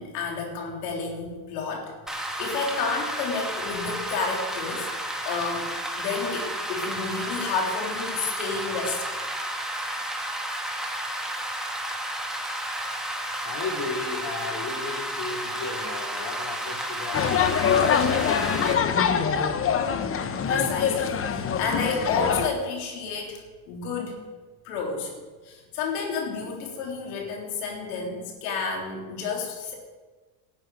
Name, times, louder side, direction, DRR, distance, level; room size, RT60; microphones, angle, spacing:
voice 1, 0.0-4.9 5.3-5.7 6.0-9.2 12.7-12.9 20.5-24.2 24.6-25.1 25.4-29.7, left 4 dB, 70° left, 0 dB, 3.7 m, -30 dB
Rain, 2.1-18.7, right 1 dB, ahead, 2.1 m, -32 dB
voice 2, 13.4-19.4, left 3 dB, 45° left, 0 dB, 3.2 m, -35 dB
sound 1, 17.1-22.5, left 7 dB, 25° left, 1.1 m, -24 dB
11.5 x 7.7 x 9.3 m, 1.3 s
supercardioid pair, 105°, 49 cm